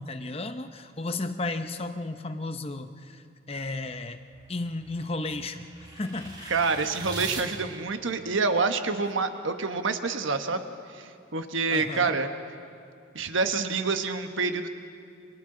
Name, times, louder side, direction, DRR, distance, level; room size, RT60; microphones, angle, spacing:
voice 1, 0.0-4.2 4.5-5.7 5.9-6.5 11.7-12.2, left 2 dB, 30° left, 8 dB, 0.8 m, -34 dB
sound 1, 3.9-7.4, right 2 dB, 20° right, 2.4 m, -42 dB
voice 2, 6.5-10.6 10.9-12.3 13.1-14.7, right 4 dB, 80° right, 7 dB, 1.3 m, -27 dB
29.5 x 26.5 x 3.9 m, 2.4 s
head